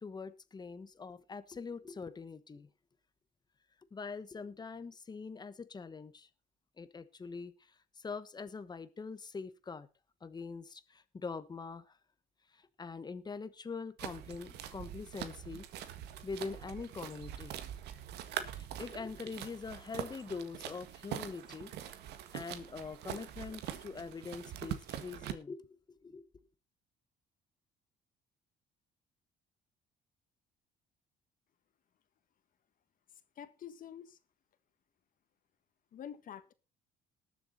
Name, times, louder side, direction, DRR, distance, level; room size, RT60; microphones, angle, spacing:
voice 1, 0.0-2.7 3.9-6.3 6.8-7.5 8.0-9.9 10.2-11.9 12.5-15.7 16.2-17.5 18.5-21.9 22.3-26.2, left 4 dB, 25° left, 13 dB, 1.3 m, -43 dB
sound 1, 14.0-25.3, right 10 dB, 80° right, 1.7 m, -44 dB
voice 2, 33.4-34.2 35.9-36.5, left 9 dB, 55° left, 11 dB, 1.7 m, -47 dB
20.0 x 7.1 x 4.2 m, 0.30 s
cardioid pair, 110°, 17 cm